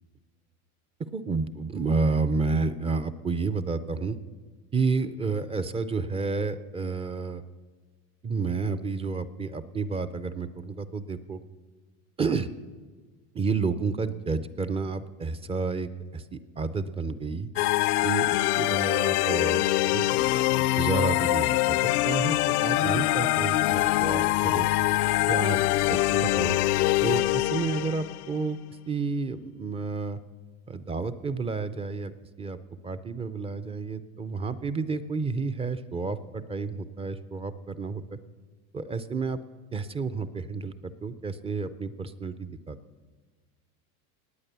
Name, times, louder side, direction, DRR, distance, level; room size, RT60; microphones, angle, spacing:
voice 1, 1.1-4.2 4.7-7.4 8.2-11.4 12.2-12.5 13.3-17.5 18.0-20.3 20.5-24.7 25.3-26.6 27.0-28.6 28.9-30.2 30.7-32.1 32.4-32.6 32.8-38.2 38.7-39.4 39.7-42.8, right 4 dB, 15° right, 12 dB, 0.4 m, -30 dB
sound 1, 17.6-28.3, left 17 dB, 80° left, 0.6 m, -24 dB
19.0 x 8.5 x 6.8 m, 1.4 s
supercardioid pair, 110°, 44 cm